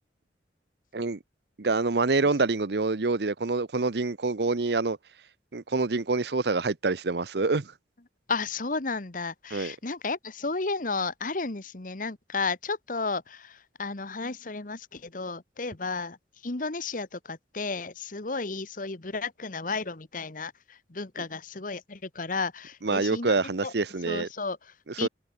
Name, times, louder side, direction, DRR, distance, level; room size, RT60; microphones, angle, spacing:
voice 1, 1.6-5.0 5.5-7.7 9.5-9.8 21.2-21.3 22.8-24.3 25.0-25.1, right 3 dB, 65° right, 0.8 m, -26 dB
voice 2, 8.3-16.2 16.4-23.3 23.6-23.7 24.1-25.1, left 4 dB, 50° left, 1.4 m, -33 dB
head